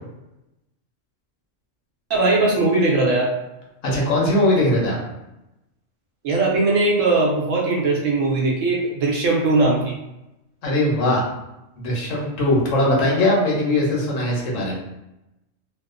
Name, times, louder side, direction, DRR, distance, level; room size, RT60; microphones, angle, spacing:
voice 1, 2.1-3.3 6.2-10.0, right 2 dB, 75° right, -2 dB, 1.0 m, -19 dB
voice 2, 3.8-5.0 10.6-11.2 11.8-14.8, left 1 dB, 80° left, -3 dB, 1.1 m, -20 dB
2.8 x 2.1 x 2.4 m, 0.92 s
omnidirectional pair, 1.3 m